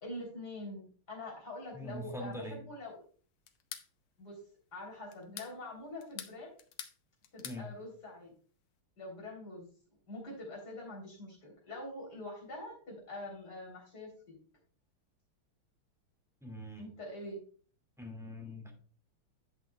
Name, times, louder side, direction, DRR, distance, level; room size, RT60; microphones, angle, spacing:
voice 1, 0.0-3.0 4.2-4.4 4.7-6.6 7.3-8.3 9.0-9.6 10.1-14.4 16.8-17.4, left 1 dB, 50° left, -1 dB, 4.0 m, -45 dB
voice 2, 1.7-2.6 7.4-7.7 16.4-16.9 18.0-18.7, equal, ahead, 1 dB, 2.0 m, -43 dB
sound 1, 3.5-3.9 5.1-5.5 6.0-7.0 7.2-7.6, left 9 dB, 90° left, 1.8 m, -45 dB
11.0 x 8.1 x 2.3 m, 0.42 s
omnidirectional pair, 2.3 m